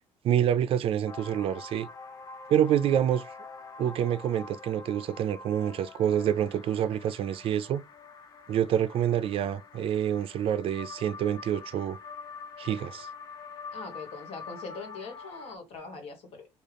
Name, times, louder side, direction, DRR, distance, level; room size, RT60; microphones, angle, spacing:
voice 1, 0.2-1.9 2.5-3.2 3.8-7.8 8.5-12.0 12.6-13.1, right 10 dB, 60° right, 0.4 m, -27 dB
sound 1, 1.1-15.6, left 4 dB, 35° left, 0.4 m, -45 dB
voice 2, 13.7-16.5, left 4 dB, 65° left, 1.4 m, -42 dB
3.7 x 2.4 x 3.3 m
cardioid pair, 160°, 11 cm